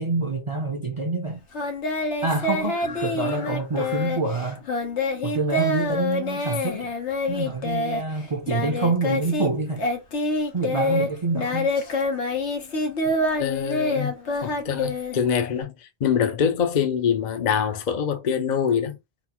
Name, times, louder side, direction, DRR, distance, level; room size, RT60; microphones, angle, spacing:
voice 1, 0.0-1.4 2.2-4.6 5.2-6.9 7.3-9.9 10.5-11.7, right 3 dB, 35° right, 0.6 m, -26 dB
Singing, 1.5-9.5 9.8-15.6, left 2 dB, 90° left, 1.3 m, -26 dB
voice 2, 13.4-14.1 14.4-19.0, left 7 dB, 50° left, 0.7 m, -24 dB
4.1 x 2.0 x 4.2 m
omnidirectional pair, 1.1 m